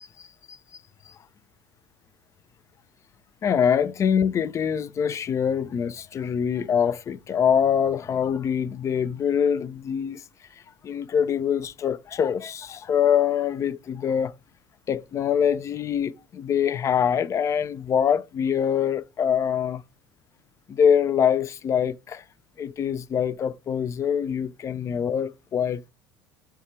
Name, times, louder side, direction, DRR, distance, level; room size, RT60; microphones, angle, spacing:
voice 1, 3.4-10.2 10.8-14.3 14.9-19.8 20.7-22.2 22.6-25.9, left 8 dB, 25° left, 0.3 m, -24 dB
4.5 x 2.4 x 4.4 m
figure-of-eight pair, 65°, 11 cm